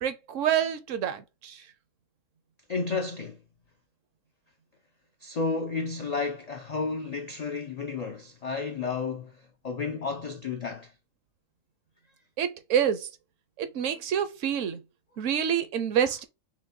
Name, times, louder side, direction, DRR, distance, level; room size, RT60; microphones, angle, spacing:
voice 1, 0.0-1.6 12.4-13.1 13.6-14.8 15.2-16.2, right 9 dB, 70° right, 1.0 m, -27 dB
voice 2, 2.7-3.4 5.2-10.9 16.0-16.1, left 4 dB, 80° left, 0.3 m, -32 dB
5.9 x 2.2 x 2.6 m
omnidirectional pair, 1.4 m